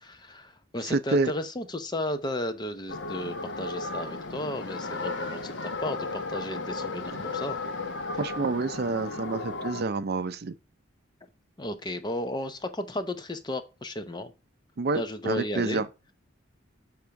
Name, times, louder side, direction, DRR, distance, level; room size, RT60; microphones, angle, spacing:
voice 1, 0.0-7.6 11.6-14.3 14.9-15.8, left 1 dB, 20° left, 0.7 m, -34 dB
voice 2, 0.8-1.3 7.2-7.3 8.2-10.5 14.8-15.9, right 3 dB, 50° right, 0.5 m, -28 dB
sound 1, 2.9-9.8, left 3 dB, 60° left, 1.0 m, -35 dB
6.7 x 3.6 x 5.7 m
head